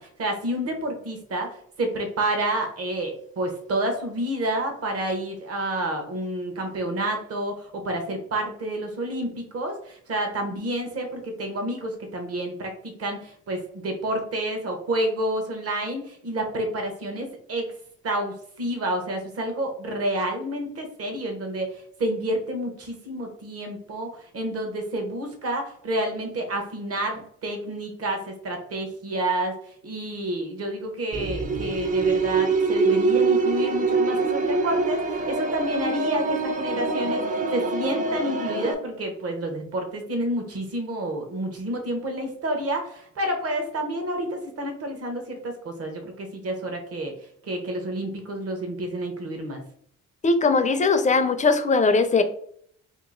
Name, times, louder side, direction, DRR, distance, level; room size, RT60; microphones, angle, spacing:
voice 1, 0.0-1.5 1.8-17.7 18.0-29.6 29.8-47.1 47.4-49.6, right 1 dB, 50° right, 4 dB, 1.0 m, -29 dB
sound 1, 31.1-38.7, right 3 dB, 25° right, 0.6 m, -24 dB
voice 2, 50.2-52.2, left 4 dB, 25° left, 9 dB, 0.4 m, -20 dB
2.9 x 2.5 x 3.8 m, 0.64 s
cardioid pair, 90°, 30 cm